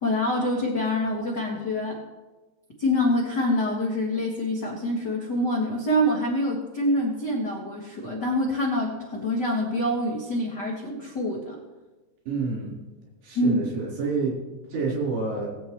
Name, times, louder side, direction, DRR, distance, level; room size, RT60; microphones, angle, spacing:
voice 1, 0.0-2.0 2.8-11.6 13.3-13.7, left 1 dB, 55° left, -3 dB, 1.2 m, -26 dB
voice 2, 12.3-12.7 13.2-14.3 14.7-15.5, right 4 dB, 65° right, -5 dB, 5.9 m, -28 dB
19.5 x 8.2 x 3.1 m, 1.2 s
omnidirectional pair, 4.6 m